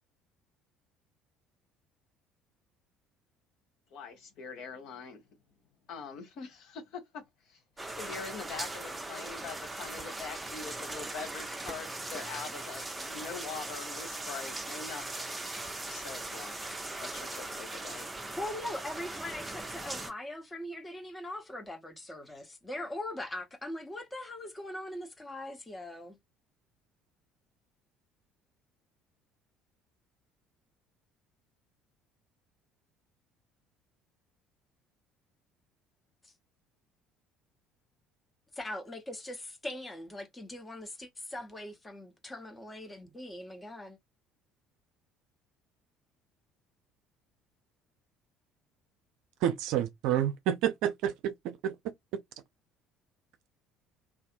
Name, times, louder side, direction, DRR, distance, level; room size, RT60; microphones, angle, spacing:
voice 1, 3.9-5.2 5.9-7.6 8.0-15.3 15.9-16.5 17.0-18.1, left 5 dB, 55° left, 0.9 m, -43 dB
sound 1, 7.8-20.1, right 2 dB, 15° right, 0.6 m, -39 dB
voice 2, 18.4-26.2 36.2-36.3 38.5-44.0, left 1 dB, 15° left, 0.9 m, -41 dB
voice 3, 49.4-51.7, right 11 dB, 60° right, 0.4 m, -29 dB
2.5 x 2.5 x 2.4 m
figure-of-eight pair, 55°, 0 cm